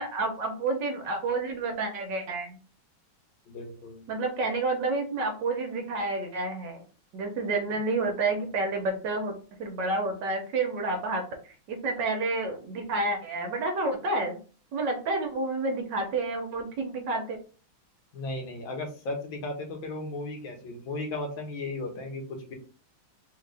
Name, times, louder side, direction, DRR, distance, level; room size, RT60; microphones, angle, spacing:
voice 1, 0.0-2.6 4.1-6.8 7.1-9.3 9.6-14.4 14.7-17.4, right 3 dB, 65° right, 4 dB, 1.3 m, -29 dB
voice 2, 3.5-4.1 18.1-22.5, left 2 dB, 70° left, 3 dB, 1.7 m, -35 dB
3.9 x 2.8 x 3.3 m, 0.39 s
omnidirectional pair, 2.3 m